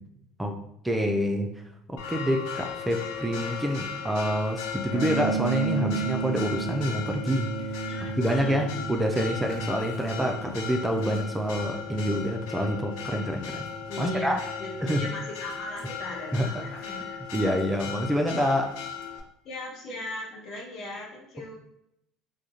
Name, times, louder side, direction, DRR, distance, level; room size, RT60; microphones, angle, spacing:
voice 1, 0.8-1.5 1.9-7.5 8.2-13.7 14.0-14.4 14.8-15.1 16.3-16.6 17.3-18.7, equal, 10° right, 3 dB, 0.3 m, -27 dB
Church bell, 2.0-19.2, left 6 dB, 70° left, 0.4 m, -37 dB
sound 1, 4.9-15.0, right 5 dB, 30° left, 1.0 m, -35 dB
voice 2, 7.9-8.7 9.0-9.2 13.9-17.1 19.4-21.5, left 2 dB, 55° left, -1 dB, 0.8 m, -38 dB
2.3 x 2.0 x 2.7 m, 0.79 s
hypercardioid pair, 75°, 0 cm